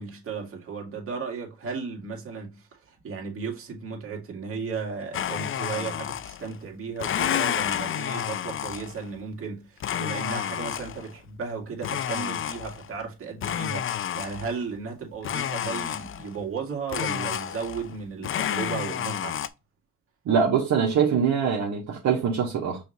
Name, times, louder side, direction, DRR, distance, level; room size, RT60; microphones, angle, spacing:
voice 1, 0.0-19.4, right 5 dB, 45° right, 1.9 m, -35 dB
Domestic sounds home sounds, 5.1-6.6 7.0-9.1 9.8-11.1 11.8-12.9 13.4-14.6 15.2-16.4 16.9-18.0 18.2-19.5, left 10 dB, 45° left, 0.4 m, -30 dB
voice 2, 20.2-22.8, right 7 dB, 70° right, 1.3 m, -23 dB
5.5 x 3.2 x 2.7 m
cardioid pair, 90°, 30 cm